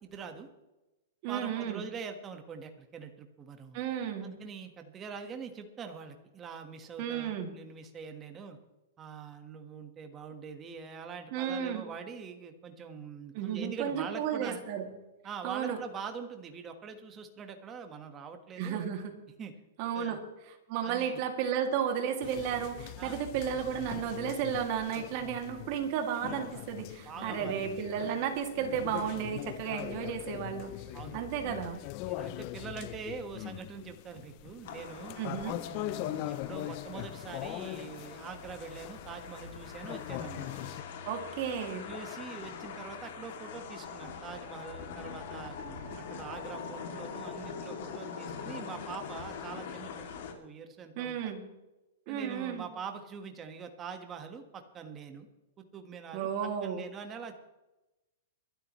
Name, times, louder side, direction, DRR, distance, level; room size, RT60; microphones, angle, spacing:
voice 1, 0.0-0.5 1.3-3.8 4.2-8.6 9.0-14.6 15.2-18.8 19.4-19.5 19.9-20.2 20.8-21.2 23.0-23.2 27.0-27.7 30.9-31.3 32.0-35.2 35.7-40.5 41.9-51.3 52.1-55.3 55.6-56.3 56.6-57.4, right 6 dB, 15° right, 6 dB, 1.4 m, -44 dB
voice 2, 1.2-1.8 3.7-4.3 7.0-7.5 11.3-11.9 13.3-14.9 15.4-15.8 18.6-19.2 19.8-20.2 20.7-30.8 31.1-31.8 35.2-35.6 41.0-41.9 51.0-51.4 52.1-52.7 56.1-56.8, right 8 dB, 35° right, 4 dB, 2.3 m, -33 dB
sound 1, 22.2-40.8, left 16 dB, 35° left, 0.4 m, -42 dB
sound 2, 34.6-50.3, left 6 dB, 55° left, 2.5 m, -43 dB
22.5 x 12.0 x 3.1 m, 1.0 s
supercardioid pair, 165°, 0 cm